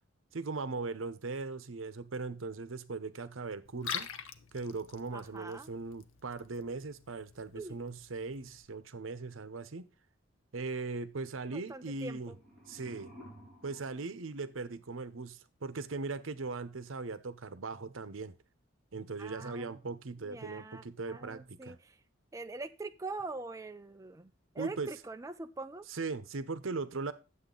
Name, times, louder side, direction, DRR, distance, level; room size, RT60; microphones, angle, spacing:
voice 1, 0.3-4.1 4.5-9.9 10.5-12.3 12.7-13.1 13.6-18.4 18.9-21.8 24.6-24.9 25.9-27.1, right 3 dB, 80° right, 0.8 m, -39 dB
Liquid, 3.6-8.6, left 8 dB, 85° left, 0.9 m, -45 dB
voice 2, 5.1-5.7 7.5-7.8 11.5-12.4 19.2-19.8 20.2-22.0 22.3-25.9, right 3 dB, 15° right, 0.4 m, -43 dB
sound 1, 12.0-15.0, equal, ahead, 5.5 m, -55 dB
10.0 x 7.8 x 3.9 m
head